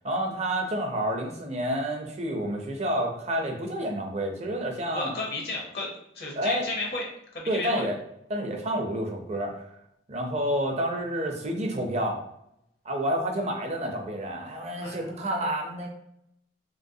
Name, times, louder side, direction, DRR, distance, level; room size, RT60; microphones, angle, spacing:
voice 1, 0.0-5.1 6.3-6.7 7.5-8.0 8.3-9.6 10.1-12.2 12.8-15.9, right 1 dB, 40° right, 2 dB, 0.6 m, -29 dB
voice 2, 4.9-7.1 7.3-7.9 14.8-15.1, left 2 dB, 65° left, -1 dB, 0.8 m, -33 dB
3.1 x 3.0 x 2.7 m, 0.77 s
head